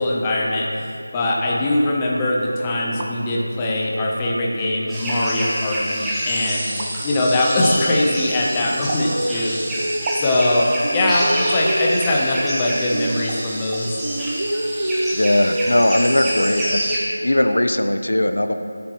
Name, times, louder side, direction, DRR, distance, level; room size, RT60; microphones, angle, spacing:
voice 1, 0.0-9.9 10.2-14.0, left 1 dB, 10° left, -3 dB, 0.8 m, -21 dB
sound 1, 3.0-3.1 4.0-4.1 4.9-5.2 6.8-6.9 8.9-9.1 10.1-10.3 11.1-11.3 12.6-12.7 13.3-13.4 13.7-13.8, right 3 dB, 20° right, 0.7 m, -32 dB
sound 2, 4.9-17.0, equal, 5° right, 1.1 m, -27 dB
sound 3, 7.7-10.5 10.8-13.8 14.0-17.5, right 1 dB, 80° right, 0.9 m, -28 dB
voice 2, 15.1-16.8 17.2-18.5, left 1 dB, 85° left, 7 dB, 0.8 m, -19 dB
24.5 x 8.7 x 3.1 m, 2.6 s
figure-of-eight pair, 175°, 0 cm